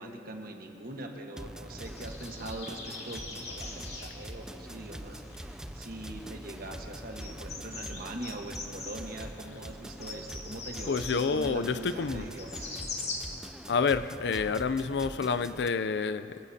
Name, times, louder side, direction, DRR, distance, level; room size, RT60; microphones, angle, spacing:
voice 1, 0.0-12.7, right 1 dB, 55° right, 3 dB, 1.4 m, -42 dB
sound 1, 1.4-15.7, right 1 dB, 5° right, 0.4 m, -44 dB
sound 2, 1.8-13.2, left 3 dB, 35° left, 2.0 m, -44 dB
voice 2, 10.9-12.3 13.7-16.4, left 5 dB, 65° left, 13 dB, 0.4 m, -29 dB
25.0 x 15.5 x 2.8 m, 2.8 s
head